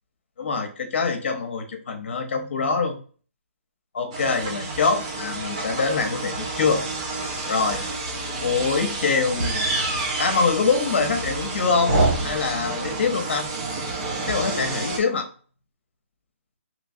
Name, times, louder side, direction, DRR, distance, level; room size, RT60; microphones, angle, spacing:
voice 1, 0.4-3.0 3.9-6.8 7.5-7.9 8.4-9.7 10.2-13.5 14.3-15.3, left 4 dB, 55° left, 5 dB, 0.8 m, -24 dB
sound 1, 4.1-15.0, right 2 dB, 30° right, 0.6 m, -28 dB
3.0 x 3.0 x 2.6 m, 0.41 s
hypercardioid pair, 165°, 8 cm